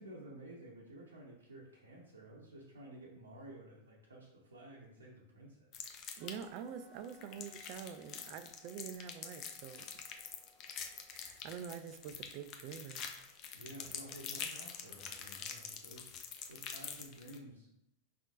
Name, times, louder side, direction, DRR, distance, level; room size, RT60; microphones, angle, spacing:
voice 1, 0.0-5.7 13.5-16.1 16.5-17.7, right 1 dB, 70° right, -4 dB, 0.7 m, -52 dB
sound 1, 5.7-6.6 7.0-17.4, left 7 dB, 35° left, 0.6 m, -46 dB
sound 2, 6.2-12.0, right 3 dB, 5° right, 1.4 m, -66 dB
voice 2, 6.2-10.1 11.1-13.0, right 8 dB, 45° right, 11 dB, 0.4 m, -46 dB
5.0 x 3.7 x 2.4 m, 0.81 s
figure-of-eight pair, 90°, 0 cm